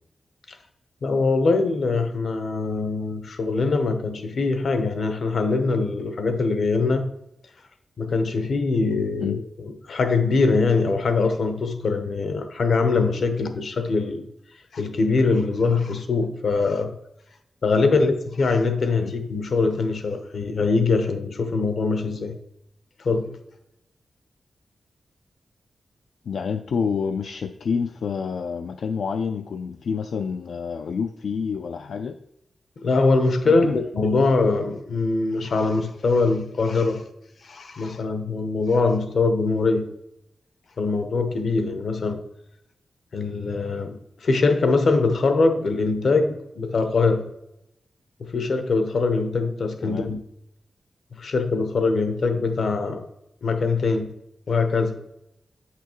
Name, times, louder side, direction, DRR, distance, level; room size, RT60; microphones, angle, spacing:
voice 1, 1.0-7.1 8.0-14.3 14.7-17.0 17.6-22.4 23.0-23.3 32.8-37.0 37.4-39.9 40.8-42.2 43.1-47.3 48.2-50.2 51.2-53.0 53.4-54.2 54.5-55.0, left 3 dB, 65° left, 0.8 m, -23 dB
voice 2, 26.3-32.2 33.4-33.8 49.8-50.1, left 6 dB, 85° left, 0.3 m, -28 dB
8.4 x 5.8 x 3.0 m
wide cardioid pair, 155°, 0 cm